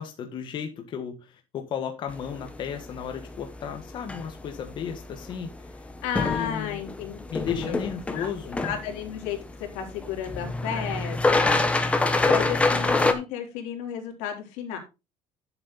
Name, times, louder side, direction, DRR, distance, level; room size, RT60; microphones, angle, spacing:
voice 1, 0.0-5.9 6.2-6.8 7.3-8.6, left 7 dB, 40° left, 5 dB, 1.5 m, -34 dB
sound 1, 2.1-13.1, left 3 dB, 10° left, 1.2 m, -28 dB
voice 2, 6.0-7.9 8.1-8.3 8.6-11.6 12.3-14.8, left 8 dB, 90° left, 2 dB, 3.8 m, -33 dB
9.9 x 7.8 x 4.1 m, 0.27 s
cardioid pair, 160°, 12 cm